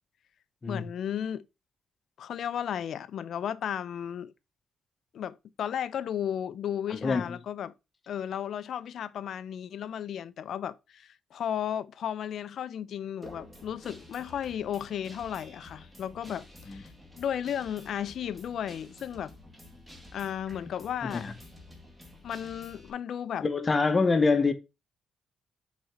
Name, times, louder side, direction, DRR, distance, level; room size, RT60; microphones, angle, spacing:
voice 1, 0.7-1.4 2.2-4.3 5.1-7.7 8.1-16.9 17.2-19.3 20.1-21.3 22.2-23.5, left 9 dB, 65° left, 0.5 m, -34 dB
Guitar, 13.2-22.9, left 1 dB, 10° right, 2.4 m, -50 dB
voice 2, 23.4-24.5, left 4 dB, 30° left, 1.0 m, -24 dB
6.4 x 4.1 x 4.6 m
cardioid pair, 90°, 0 cm